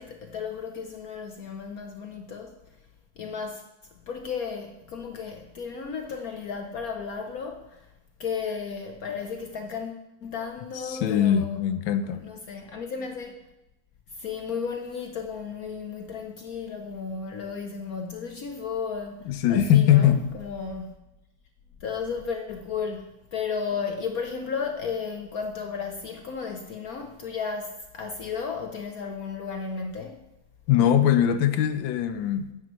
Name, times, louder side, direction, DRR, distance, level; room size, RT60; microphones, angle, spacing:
voice 1, 0.0-2.5 3.2-3.6 4.1-7.9 8.2-11.6 12.0-13.4 14.1-20.9 21.8-30.3, left 5 dB, 60° left, 4 dB, 1.0 m, -34 dB
voice 2, 10.8-12.2 19.3-20.3 30.7-32.5, left 10 dB, 85° left, 10 dB, 1.4 m, -21 dB
9.6 x 9.4 x 3.0 m, 0.93 s
omnidirectional pair, 2.0 m